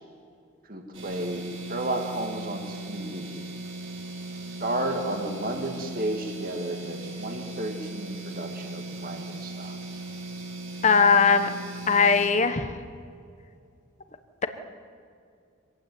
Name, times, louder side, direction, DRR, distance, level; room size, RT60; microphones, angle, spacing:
voice 1, 0.7-1.4 1.7-3.5 4.6-9.8, right 1 dB, 40° right, 4 dB, 2.2 m, -32 dB
sound 1, 0.9-12.3, right 2 dB, 65° right, 5.2 m, -38 dB
voice 2, 10.8-11.5 11.9-12.7, left 5 dB, 35° left, 9 dB, 1.3 m, -19 dB
25.0 x 16.0 x 9.4 m, 2.3 s
head